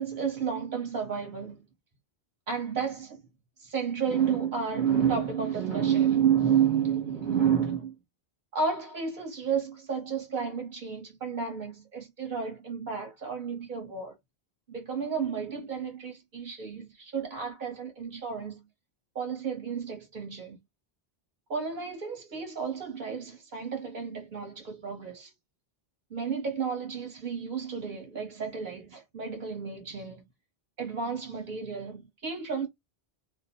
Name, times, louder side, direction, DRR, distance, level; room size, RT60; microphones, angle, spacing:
voice 1, 0.0-1.6 2.5-3.2 3.6-7.9 8.5-14.2 14.7-18.6 19.1-20.6 21.5-25.3 26.1-30.2 30.8-32.7, right 7 dB, 50° right, 1.3 m, -31 dB
2.7 x 2.1 x 2.2 m
omnidirectional pair, 1.1 m